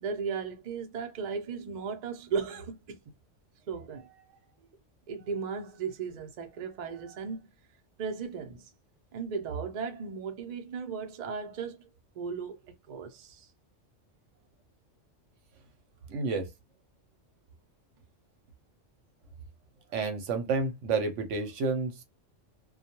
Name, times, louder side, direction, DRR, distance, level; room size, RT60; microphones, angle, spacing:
voice 1, 0.0-3.0 3.7-4.3 5.1-7.5 8.0-8.7 9.1-11.9 12.2-13.5, right 5 dB, 50° right, 0.5 m, -36 dB
voice 2, 16.1-16.5 19.9-22.0, right 4 dB, 80° right, 1.0 m, -30 dB
2.3 x 2.1 x 2.8 m
omnidirectional pair, 1.3 m